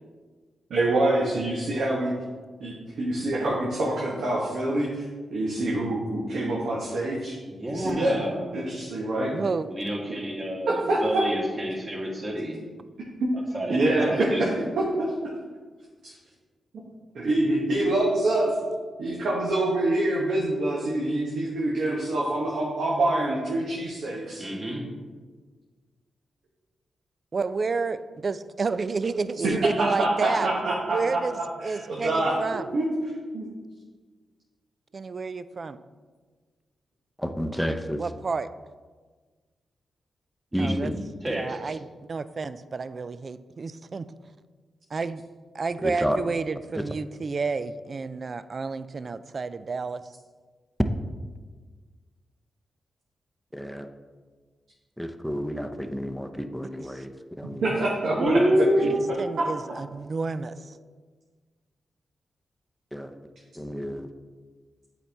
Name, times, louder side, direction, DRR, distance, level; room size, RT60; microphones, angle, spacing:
voice 1, 0.7-2.1 2.6-5.0 5.3-7.4 7.7-8.2 8.5-9.3 10.7-11.2 13.2-13.3 13.7-14.9 15.2-15.3 16.0-16.1 17.1-18.5 19.0-24.5 29.4-32.4 32.7-32.9 33.3-33.5 57.6-58.4 58.8-58.9 59.4-59.5, right 2 dB, 75° right, -3 dB, 1.0 m, -26 dB
voice 2, 7.5-8.5 9.6-12.6 13.3-14.7 24.3-24.9 40.5-40.9 41.2-41.8 58.1-59.2, equal, 35° right, -2 dB, 1.9 m, -28 dB
voice 3, 9.3-9.7 27.3-30.5 30.9-32.7 34.9-35.8 38.0-38.5 40.6-40.9 41.3-41.8 42.1-44.1 44.9-45.2 45.5-50.0 58.8-60.7, right 4 dB, 50° right, 14 dB, 0.3 m, -30 dB
voice 4, 37.2-38.0 40.5-41.0 45.8-46.2 46.7-46.9 53.5-53.9 55.0-57.9 62.9-63.1 63.6-64.1, equal, ahead, 7 dB, 0.6 m, -31 dB
8.2 x 4.2 x 3.4 m, 1.4 s
supercardioid pair, 40°, 0 cm